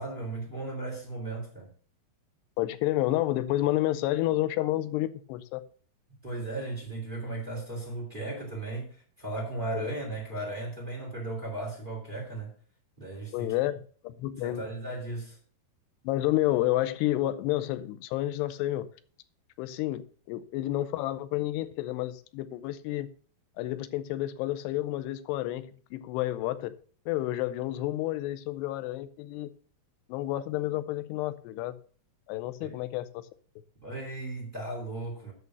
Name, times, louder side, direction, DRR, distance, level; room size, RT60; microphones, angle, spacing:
voice 1, 0.0-1.7 6.2-12.5 13.0-13.5 14.4-15.4 32.6-32.8 33.8-35.3, right 2 dB, 15° right, 2.2 m, -36 dB
voice 2, 2.6-5.6 9.7-9.9 13.3-13.8 14.0-14.6 16.0-18.9 19.6-23.1 23.6-26.7 27.1-29.5 30.1-31.8 32.3-33.2, left 15 dB, 90° left, 2.8 m, -30 dB
8.6 x 6.8 x 6.1 m
omnidirectional pair, 4.7 m